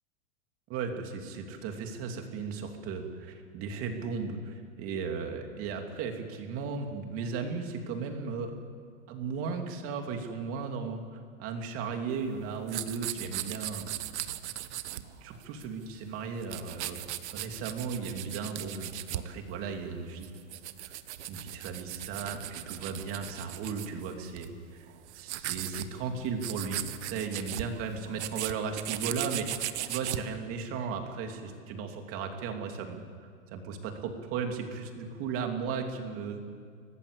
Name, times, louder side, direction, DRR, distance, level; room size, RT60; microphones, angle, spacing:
voice 1, 0.7-8.5 9.1-13.9 14.2-14.3 14.9-17.0 17.3-20.3 20.8-21.0 21.3-24.9 25.1-36.4, right 5 dB, 35° right, 4 dB, 2.8 m, -36 dB
sound 1, 12.1-15.9 16.1-19.3 19.9-24.5 24.9-25.9 26.1-26.2 26.4-30.2, right 14 dB, 55° right, 1.2 m, -38 dB
24.5 x 18.5 x 8.2 m, 2.2 s
hypercardioid pair, 135°, 40 cm